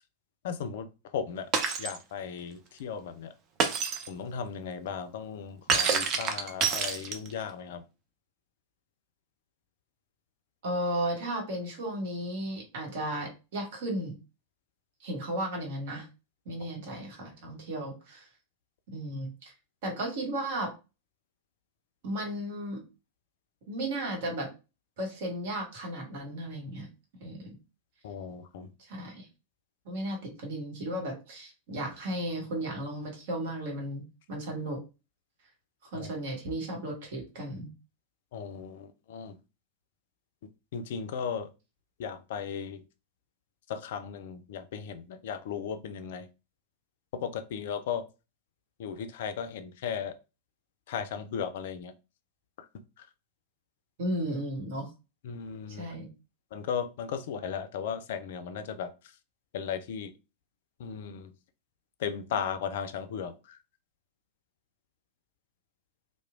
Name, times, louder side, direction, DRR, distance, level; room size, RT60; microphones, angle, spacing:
voice 1, 0.4-0.9 1.1-1.5 1.8-3.3 4.1-7.8 28.0-28.7 35.9-36.1 38.3-39.4 40.7-41.5 42.0-42.8 43.7-46.3 47.1-48.0 48.8-50.1 50.9-51.9 53.0-53.1 55.2-55.9 56.5-58.9 59.5-60.1 60.8-61.3 62.0-63.6, left 7 dB, 55° left, 0.3 m, -36 dB
Shatter, 1.5-2.0 3.6-4.1 5.7-7.4, right 5 dB, 35° right, 0.5 m, -27 dB
voice 2, 10.6-14.1 15.0-16.1 16.4-18.3 18.9-19.5 19.8-20.7 22.0-22.8 23.7-24.5 25.0-26.9 27.2-27.6 28.8-29.3 29.8-34.8 35.9-37.7 54.0-54.9 55.8-56.1, right 1 dB, 55° right, 1.1 m, -34 dB
3.0 x 2.1 x 2.4 m
figure-of-eight pair, 90°, 0 cm